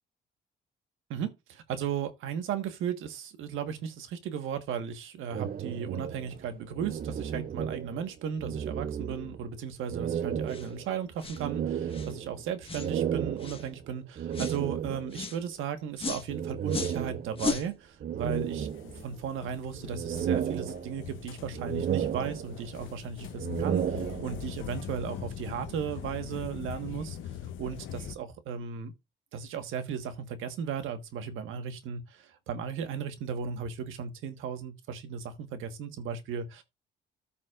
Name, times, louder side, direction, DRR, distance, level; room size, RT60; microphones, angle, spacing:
voice 1, 1.1-18.7 19.0-27.2 27.6-28.9 29.3-36.6, right 7 dB, 85° right, 1.5 m, -36 dB
sound 1, 5.3-8.1 8.4-9.5 9.9-15.3 16.3-17.6 18.0-19.3 19.7-21.2 21.5-22.8 23.3-24.6, right 9 dB, 45° right, 0.5 m, -33 dB
sound 2, 10.5-10.7 11.2-11.4 11.9-12.1 12.6-12.9 13.4-13.7 14.3-14.6 15.1-15.4 16.0-16.3 16.7-17.0 17.4-17.7, left 4 dB, 25° left, 1.4 m, -35 dB
sound 3, 18.3-28.1, left 9 dB, 80° left, 0.8 m, -42 dB
14.0 x 5.8 x 2.5 m
cardioid pair, 90°, 20 cm